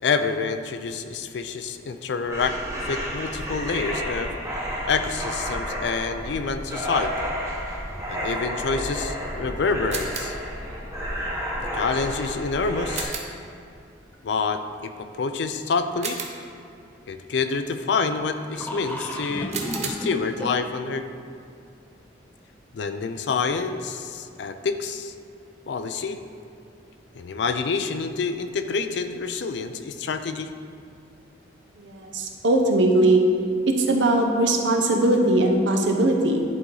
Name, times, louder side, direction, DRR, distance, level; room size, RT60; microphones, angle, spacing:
voice 1, 0.0-2.6 2.8-4.3 4.9-7.1 8.1-10.3 11.7-13.2 14.2-16.2 17.1-19.6 19.8-21.0 22.7-25.1 25.7-26.2 27.2-30.5, left 4 dB, 65° left, 9 dB, 0.4 m, -27 dB
sound 1, 2.2-13.0, equal, 15° right, 1.0 m, -31 dB
sound 2, 9.9-10.5 12.9-13.5 16.0-16.7 19.5-19.9, right 5 dB, 35° right, 0.7 m, -33 dB
sound 3, 10.1-11.0 11.3-11.4 14.1-14.2 16.1-16.2 16.3-16.4 18.2-18.3 18.5-20.7, left 1 dB, 10° left, 0.5 m, -34 dB
voice 2, 31.8-33.2 33.7-36.4, right 2 dB, 75° right, 2 dB, 0.8 m, -20 dB
11.0 x 4.1 x 3.9 m, 2.5 s
head